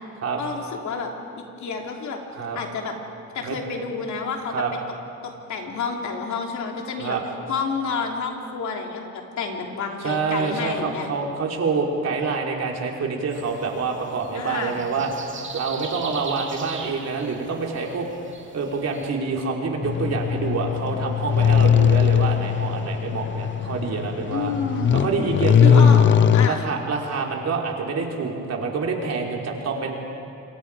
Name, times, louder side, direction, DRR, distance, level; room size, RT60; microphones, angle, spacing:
voice 1, 0.4-2.2 2.5-2.9 3.3-4.6 5.2-7.2 7.5-11.1 14.3-14.8 24.3-25.3 25.6-26.0 26.3-26.7, left 5 dB, 70° left, 1 dB, 3.1 m, -29 dB
voice 2, 10.0-15.1 15.5-18.1 18.5-24.5 24.9-25.8 26.4-29.9, right 4 dB, 55° right, 0 dB, 3.7 m, -26 dB
sound 1, 13.3-19.1, right 4 dB, 40° right, 2.7 m, -40 dB
sound 2, 19.8-26.5, left 8 dB, 40° left, 0.6 m, -19 dB
27.5 x 22.5 x 4.9 m, 2.6 s
cardioid pair, 90°, 30 cm